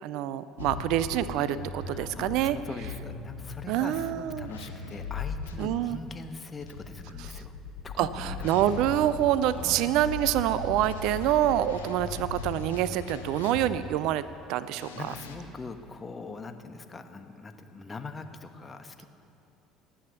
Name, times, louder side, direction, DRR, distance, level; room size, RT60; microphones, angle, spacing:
voice 1, 0.0-2.6 3.7-4.5 5.6-6.0 7.3-7.4 8.0-14.2 14.5-15.1, right 12 dB, 60° right, 15 dB, 0.4 m, -26 dB
sound 1, 0.6-5.7 6.6-14.0 14.7-15.4, left 4 dB, 80° left, 1.3 m, -39 dB
voice 2, 1.8-7.5 7.8-8.6 9.5-9.9 14.4-14.5 14.9-19.1, left 3 dB, 25° left, 7 dB, 1.2 m, -42 dB
19.0 x 8.7 x 7.0 m, 2.8 s
figure-of-eight pair, 60°, 0 cm